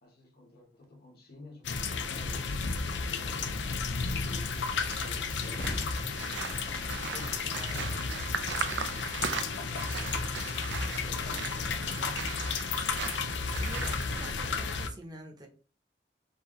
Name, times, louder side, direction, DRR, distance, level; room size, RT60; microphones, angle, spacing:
voice 1, 0.0-3.6 4.2-6.7 7.1-9.8 10.8-12.3, left 2 dB, 60° left, 1.3 m, -52 dB
sound 1, 1.6-14.9, left 4 dB, 80° left, 0.5 m, -33 dB
sound 2, 4.2-14.3, right 7 dB, 90° right, 0.5 m, -39 dB
Shatter, 5.4-8.9, left 1 dB, 35° left, 0.7 m, -43 dB
voice 2, 13.6-15.5, right 1 dB, 25° right, 0.8 m, -47 dB
4.6 x 2.7 x 3.0 m
head